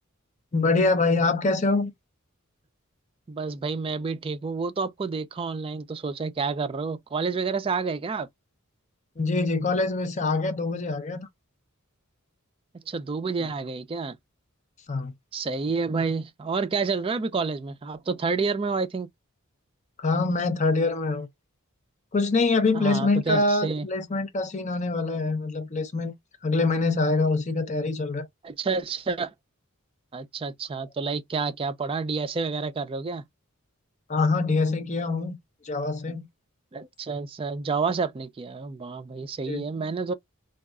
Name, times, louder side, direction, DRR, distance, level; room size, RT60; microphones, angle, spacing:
voice 1, 0.5-1.9 9.2-11.3 13.4-13.5 14.9-15.1 20.0-21.3 22.1-26.1 26.4-28.3 34.1-35.3 35.6-36.3 39.5-39.6, left 3 dB, 35° left, 0.5 m, -24 dB
voice 2, 3.3-8.3 12.9-14.2 15.3-19.1 22.7-23.9 28.4-29.3 30.1-33.2 36.7-40.1, right 4 dB, 25° right, 0.3 m, -29 dB
3.8 x 2.3 x 2.3 m
head